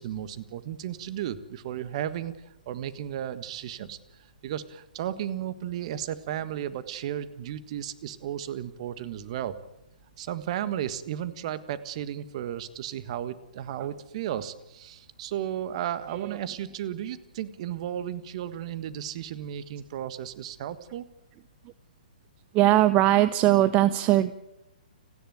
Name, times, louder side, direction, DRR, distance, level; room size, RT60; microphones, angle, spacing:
voice 1, 0.0-2.3 2.7-4.0 4.4-9.6 10.2-21.0, right 11 dB, 45° right, 13 dB, 1.6 m, -34 dB
voice 2, 22.5-24.3, right 15 dB, 25° right, 16 dB, 0.7 m, -20 dB
30.0 x 10.5 x 9.2 m, 0.94 s
figure-of-eight pair, 125°, 5 cm